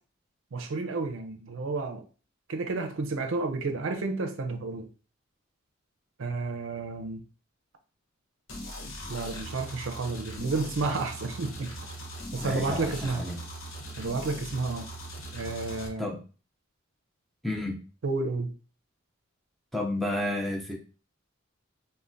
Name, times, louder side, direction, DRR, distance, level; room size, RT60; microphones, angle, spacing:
voice 1, 0.5-2.0 2.5-4.9 6.2-7.2 9.1-11.7 12.3-13.3 14.0-14.9 15.3-16.1 18.0-18.5, right 3 dB, 65° right, 0.5 m, -31 dB
sound 1, 8.5-15.9, equal, 70° left, 0.7 m, -40 dB
voice 2, 12.4-13.4 16.0-16.2 17.4-17.8 19.7-20.7, left 1 dB, ahead, 0.5 m, -31 dB
3.3 x 2.1 x 2.5 m
head